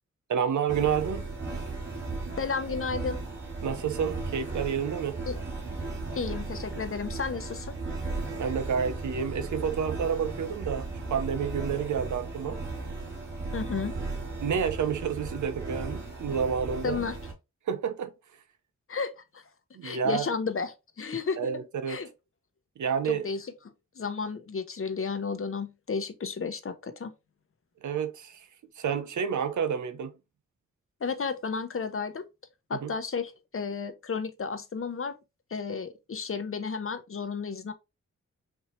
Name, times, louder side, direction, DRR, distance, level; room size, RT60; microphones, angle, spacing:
voice 1, 0.3-1.2 3.6-5.2 8.4-12.6 14.4-17.0 17.7-18.1 19.7-20.3 21.4-22.0 22.8-23.3 27.8-28.4 28.8-30.1 32.7-32.9, right 7 dB, 80° right, 0.7 m, -29 dB
sound 1, 0.7-17.3, right 3 dB, 40° right, 2.4 m, -36 dB
voice 2, 2.4-3.2 5.3-5.4 6.1-7.7 13.5-13.9 16.8-17.2 18.9-19.4 19.8-21.4 21.9-22.1 23.0-23.5 24.0-27.1 31.0-32.3 32.7-35.2 35.5-37.7, left 5 dB, 45° left, 0.8 m, -32 dB
4.3 x 2.7 x 3.1 m
cardioid pair, 55°, 29 cm